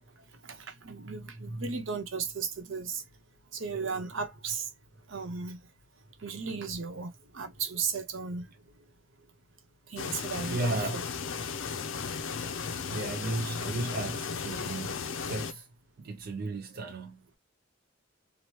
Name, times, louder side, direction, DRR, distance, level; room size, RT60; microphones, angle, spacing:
voice 1, 0.4-3.0 3.5-4.7 5.1-5.6 6.2-8.5 9.9-11.0 11.7-11.8, right 5 dB, 75° right, 0.8 m, -35 dB
sound 1, 10.0-15.5, left 5 dB, 80° left, 0.5 m, -35 dB
voice 2, 10.4-11.1 11.3-11.4 11.8-11.9 12.8-15.7 16.0-17.2, right 2 dB, 50° right, 0.4 m, -35 dB
3.0 x 2.1 x 3.0 m
head